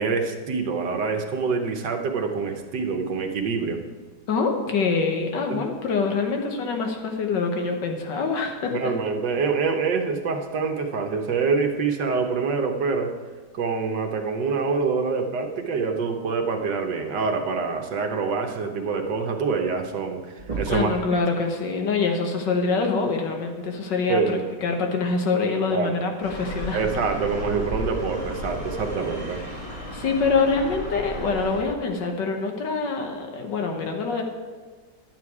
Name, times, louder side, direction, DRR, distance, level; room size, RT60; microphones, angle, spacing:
voice 1, 0.0-3.8 5.5-5.6 8.7-13.1 13.5-20.9 24.1-24.5 25.7-25.9 26.7-29.4, right 5 dB, 75° right, 4 dB, 1.7 m, -26 dB
voice 2, 4.3-8.9 20.7-26.8 29.9-34.2, left 4 dB, 75° left, 4 dB, 1.9 m, -25 dB
sound 1, 20.4-21.0 22.7-22.8 24.7-24.8 25.7-25.8, right 4 dB, 25° right, 1.4 m, -33 dB
sound 2, 26.2-31.6, equal, 50° left, 4.5 m, -34 dB
11.0 x 9.3 x 4.8 m, 1.4 s
omnidirectional pair, 1.9 m